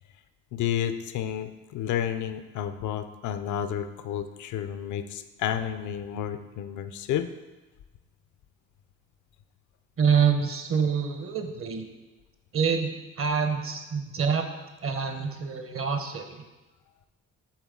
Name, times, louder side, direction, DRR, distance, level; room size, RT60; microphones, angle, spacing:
voice 1, 0.5-7.3, left 9 dB, 75° left, 10 dB, 0.5 m, -31 dB
voice 2, 10.0-11.8 12.5-12.9 13.2-14.5 14.8-16.5, right 6 dB, 45° right, 6 dB, 0.8 m, -26 dB
7.2 x 3.7 x 3.7 m, 1.2 s
cardioid pair, 90°, 30 cm